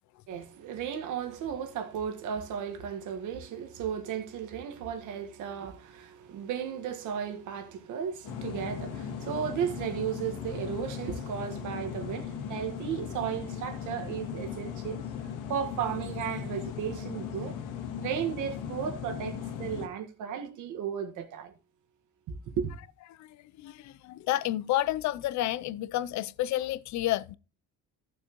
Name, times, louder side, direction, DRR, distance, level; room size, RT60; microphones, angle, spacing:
voice 1, 0.3-15.0 15.5-17.6 18.0-21.5 22.3-22.7, right 8 dB, 70° right, 1.6 m, -35 dB
sound 1, 8.2-19.9, left 8 dB, 80° left, 1.9 m, -38 dB
voice 2, 23.1-27.4, left 14 dB, 60° left, 0.5 m, -30 dB
14.5 x 6.9 x 3.0 m
cardioid pair, 130°, 31 cm